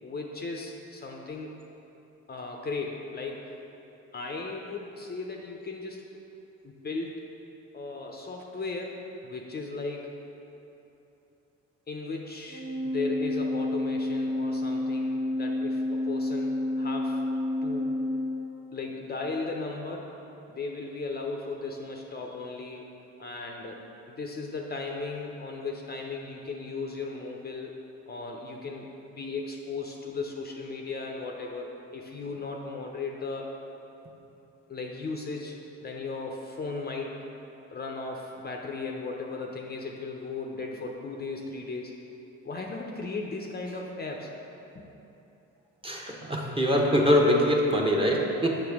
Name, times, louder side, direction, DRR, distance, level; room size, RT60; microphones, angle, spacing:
voice 1, 0.0-1.5 2.3-3.5 4.1-6.0 6.6-7.1 7.7-10.2 11.9-17.2 17.6-18.0 18.7-20.1 20.5-22.9 23.2-23.8 24.1-27.7 28.1-33.5 34.7-37.2 37.7-41.9 42.4-44.3 44.7-44.8, left 3 dB, 35° left, 1 dB, 0.6 m, -36 dB
Organ, 12.5-19.0, left 1 dB, 65° right, 1.1 m, -30 dB
voice 2, 45.8-48.6, equal, 15° right, -1 dB, 0.9 m, -23 dB
7.0 x 5.7 x 3.5 m, 3.0 s
cardioid pair, 90°, 30 cm